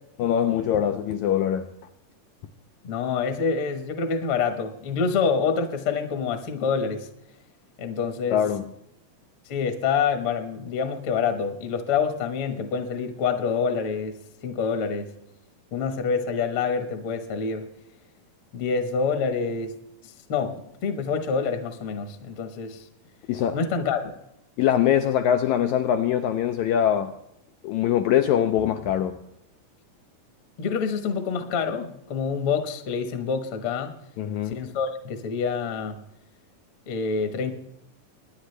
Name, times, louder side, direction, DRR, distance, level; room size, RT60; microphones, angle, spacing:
voice 1, 0.2-1.7 8.3-8.7 23.3-23.6 24.6-27.1 27.6-29.2 34.2-34.6, left 10 dB, 80° left, 7 dB, 1.7 m, -23 dB
voice 2, 2.8-7.1 7.8-8.4 9.5-15.1 15.7-17.7 18.5-19.7 20.0-22.8 23.5-24.0 30.6-33.9 34.5-36.0 36.9-37.5, left 5 dB, 55° left, 6 dB, 1.5 m, -27 dB
23.0 x 10.0 x 3.3 m, 0.81 s
omnidirectional pair, 4.0 m